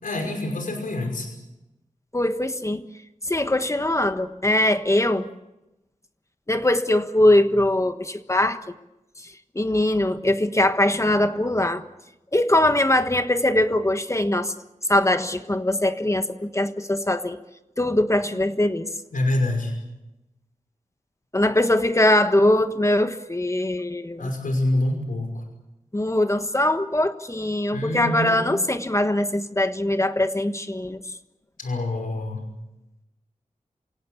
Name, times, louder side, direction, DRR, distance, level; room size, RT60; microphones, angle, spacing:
voice 1, 0.0-1.3 19.1-19.7 24.2-25.4 27.7-28.6 31.6-32.4, left 1 dB, 85° left, 3 dB, 5.6 m, -26 dB
voice 2, 2.1-2.9 3.2-5.3 6.5-8.6 9.5-11.8 12.3-14.5 14.9-17.4 17.8-18.9 21.3-24.3 25.9-31.1, left 1 dB, 20° left, 9 dB, 1.4 m, -21 dB
27.5 x 17.5 x 8.5 m, 0.95 s
wide cardioid pair, 85°, 14 cm